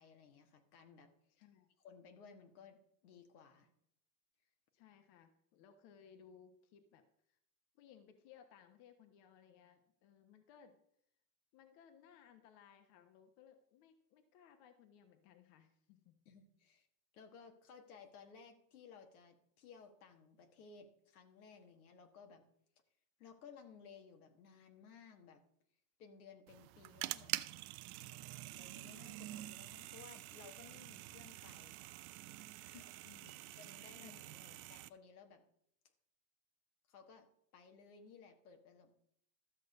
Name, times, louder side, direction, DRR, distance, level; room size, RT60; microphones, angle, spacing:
voice 1, 0.0-1.1 1.8-3.7 16.2-16.9 17.1-22.4 23.2-25.4 26.0-27.4 28.4-31.8 32.4-32.9 33.6-34.4 34.7-35.4 36.9-37.3 37.5-38.9, left 6 dB, 90° left, 5 dB, 1.6 m, -59 dB
voice 2, 1.3-1.7 4.7-7.4 7.7-10.8 11.5-16.2 33.0-33.6 34.0-34.6, left 8 dB, 65° left, 7 dB, 1.2 m, -63 dB
sound 1, 26.5-34.9, right 17 dB, 80° right, 0.6 m, -47 dB
13.0 x 6.5 x 5.3 m, 0.70 s
supercardioid pair, 105°, 43 cm